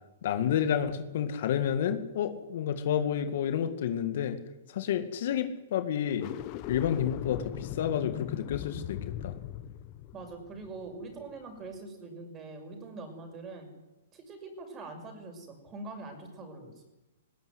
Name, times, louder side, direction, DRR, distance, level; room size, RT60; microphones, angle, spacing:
voice 1, 0.2-4.4 4.7-6.3 6.7-9.3, left 9 dB, 60° left, 8 dB, 2.1 m, -30 dB
sound 1, 6.1-11.4, left 13 dB, 35° left, 1.2 m, -39 dB
voice 2, 10.1-13.7 14.1-16.8, right 3 dB, 20° right, 5 dB, 6.3 m, -43 dB
19.5 x 18.5 x 9.7 m, 1.0 s
hypercardioid pair, 140°, 0 cm